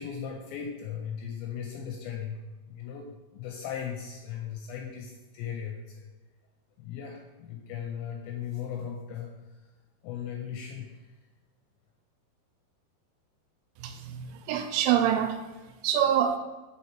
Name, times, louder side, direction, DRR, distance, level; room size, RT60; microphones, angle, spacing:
voice 1, 0.0-2.4 2.7-6.1 6.8-9.3 10.0-11.0, left 8 dB, 85° left, 1 dB, 2.6 m, -37 dB
voice 2, 13.8-15.4 15.8-16.4, right 9 dB, 85° right, 7 dB, 3.0 m, -26 dB
6.8 x 3.2 x 4.3 m, 1.2 s
omnidirectional pair, 5.5 m